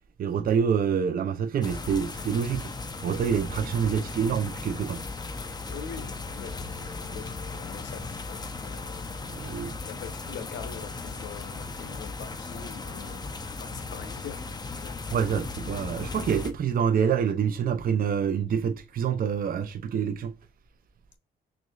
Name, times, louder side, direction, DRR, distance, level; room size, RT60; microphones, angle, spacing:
voice 1, 0.2-2.7 3.0-5.0 9.3-9.8 15.1-20.3, right 7 dB, 45° right, 0.5 m, -26 dB
sound 1, 1.6-16.5, left 3 dB, 20° left, 0.6 m, -37 dB
voice 2, 5.7-9.1 9.8-13.3 13.6-14.5 14.7-15.0, left 7 dB, 65° left, 0.8 m, -43 dB
6.1 x 2.6 x 2.3 m
cardioid pair, 90°, 20 cm